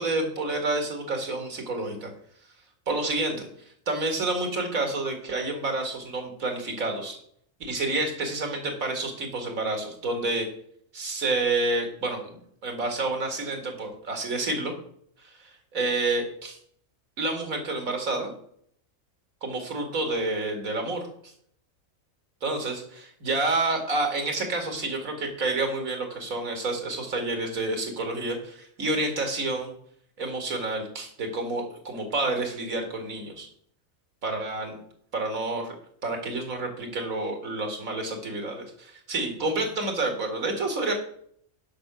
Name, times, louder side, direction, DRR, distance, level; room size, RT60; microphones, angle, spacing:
voice 1, 0.0-2.1 2.9-3.5 3.9-7.2 7.6-10.5 10.9-12.3 12.6-14.7 15.2-16.6 17.2-18.3 19.4-21.3 22.4-29.7 30.2-33.5 34.2-34.8 35.1-35.7 36.0-40.9, right 2 dB, 90° right, 4 dB, 2.7 m, -29 dB
10.5 x 5.9 x 6.2 m, 0.64 s
omnidirectional pair, 1.4 m